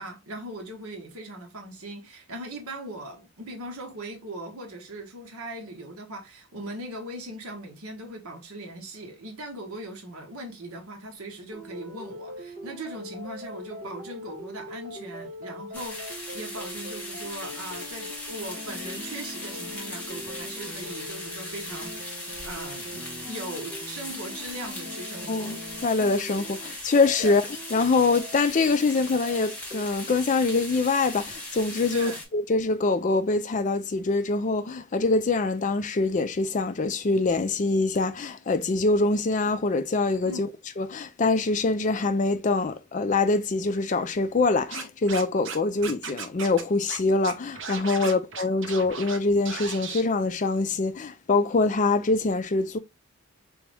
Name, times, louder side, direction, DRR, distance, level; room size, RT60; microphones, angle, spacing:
voice 1, 0.0-25.5 27.2-27.4 31.9-32.2 40.2-40.5 48.0-48.2, right 1 dB, 75° right, 1.2 m, -39 dB
sound 1, 11.5-29.8, equal, 40° right, 1.1 m, -42 dB
sound 2, 15.7-32.2, left 1 dB, 5° left, 1.2 m, -38 dB
voice 2, 25.3-27.4 27.7-40.5 40.8-52.8, left 3 dB, 35° left, 0.4 m, -24 dB
Scratching (performance technique), 44.7-45.5 45.8-46.6 46.9-47.0 47.2-49.2 49.4-50.0, right 6 dB, 55° right, 0.7 m, -36 dB
3.5 x 3.1 x 3.3 m
head